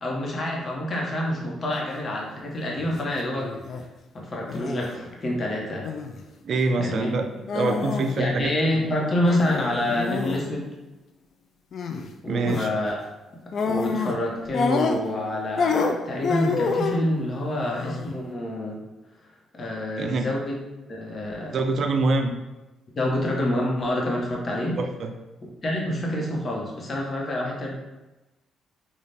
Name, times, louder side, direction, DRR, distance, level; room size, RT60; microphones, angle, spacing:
voice 1, 0.0-3.5 4.1-5.9 6.8-7.1 8.1-10.7 12.2-13.0 13.6-18.8 19.5-20.6 20.9-21.6 23.0-24.8 25.6-27.7, left 1 dB, 40° left, -2 dB, 1.0 m, -27 dB
sound 1, 2.8-3.0 3.4-3.8 4.5-4.9 5.8-6.2 7.5-8.2 8.4-8.5 9.2-10.5 11.7-12.1 12.4-12.7 13.5-14.2 14.5-15.3 15.6-17.1 17.6-18.1, left 5 dB, 60° left, 0.3 m, -27 dB
voice 2, 6.4-8.9 12.3-12.7 20.0-20.3 21.5-22.3 24.8-25.1, right 3 dB, 55° right, 5 dB, 0.4 m, -25 dB
4.1 x 2.4 x 3.3 m, 1.0 s
cardioid pair, 90°, 0 cm